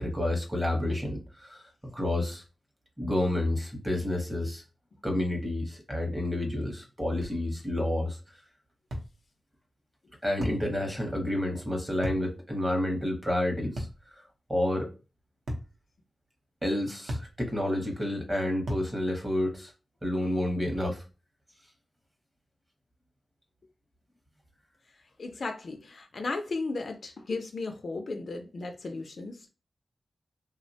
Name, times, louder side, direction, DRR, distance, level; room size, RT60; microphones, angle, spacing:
voice 1, 0.0-1.6 1.9-2.4 3.0-4.6 5.0-8.2 10.2-13.9 14.2-14.3 14.5-14.9 16.6-19.7 20.0-21.0, left 1 dB, 10° right, 0.7 m, -29 dB
sound 1, 7.2-7.4 8.9-9.1 10.4-10.7 12.0-12.3 13.8-14.0 15.5-15.7 17.1-17.3 18.7-18.9, equal, 60° right, 0.7 m, -34 dB
voice 2, 25.2-29.5, left 3 dB, 50° left, 0.3 m, -35 dB
3.2 x 2.1 x 2.6 m
wide cardioid pair, 170°, 0 cm